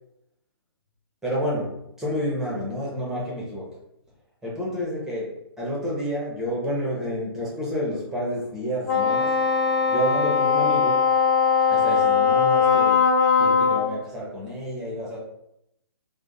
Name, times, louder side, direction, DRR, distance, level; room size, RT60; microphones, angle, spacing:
voice 1, 1.2-3.8 4.4-9.4 9.9-11.1 11.7-13.0 13.4-15.2, equal, 5° right, -5 dB, 1.0 m, -29 dB
Wind instrument woodwind instrument, 8.9-13.9, left 6 dB, 45° left, 1.3 m, -20 dB
4.8 x 2.2 x 2.5 m, 0.81 s
hypercardioid pair, 140°, 14 cm